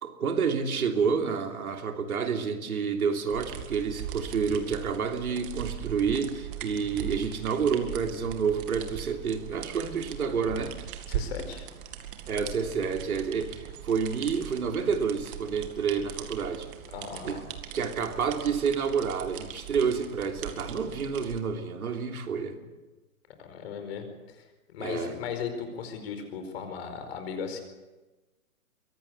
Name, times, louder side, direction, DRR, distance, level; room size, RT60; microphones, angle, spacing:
voice 1, 0.0-10.7 12.3-16.7 17.2-17.4 17.7-22.6 24.8-25.2, right 6 dB, 75° right, 4 dB, 3.2 m, -29 dB
sound 1, 3.3-21.4, right 10 dB, 35° right, 2.1 m, -40 dB
voice 2, 11.1-11.7 16.9-17.5 23.4-24.4 24.7-27.6, left 6 dB, 45° left, 7 dB, 4.8 m, -37 dB
23.0 x 17.5 x 8.2 m, 1.1 s
hypercardioid pair, 150°, 44 cm